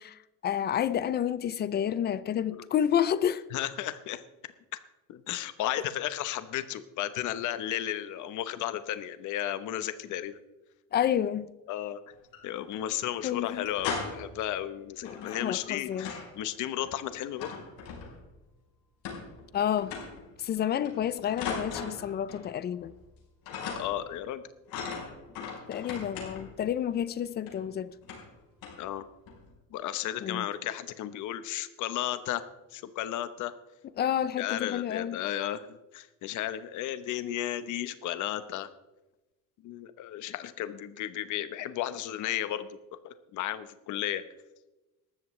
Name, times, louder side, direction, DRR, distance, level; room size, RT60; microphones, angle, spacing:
voice 1, 0.0-3.4 10.9-11.5 13.2-13.7 15.0-16.1 19.5-19.9 20.4-22.9 25.4-27.9 30.2-30.5 34.0-35.2, left 9 dB, 30° left, 0.4 m, -30 dB
voice 2, 3.5-4.8 5.1-10.4 11.7-12.0 12.4-17.5 23.8-24.4 28.8-29.0 29.7-32.4 32.7-33.5 34.4-38.7 39.6-42.8 43.0-44.2, left 12 dB, 60° left, 0.9 m, -34 dB
sound 1, 12.1-12.8 13.1-13.2 13.5-14.4 15.0-16.4 16.6-18.4 19.0-19.5 19.8-20.3 20.8-22.5 22.8-23.2 23.5-24.1 24.7-26.6 27.5-27.6 28.0-28.3 28.6-28.9 29.3-29.5, left 5 dB, 80° left, 4.6 m, -39 dB
18.5 x 13.5 x 3.2 m
cardioid pair, 180°, 34 cm